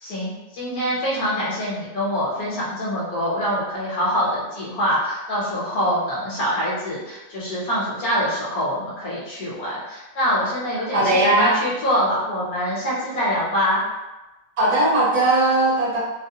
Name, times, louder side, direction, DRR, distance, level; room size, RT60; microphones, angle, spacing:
voice 1, 0.0-13.8, equal, 60° left, -6 dB, 1.2 m, -24 dB
voice 2, 10.9-11.6 14.6-16.0, right 2 dB, 65° right, -9 dB, 1.9 m, -18 dB
3.9 x 2.0 x 2.7 m, 1.1 s
omnidirectional pair, 1.9 m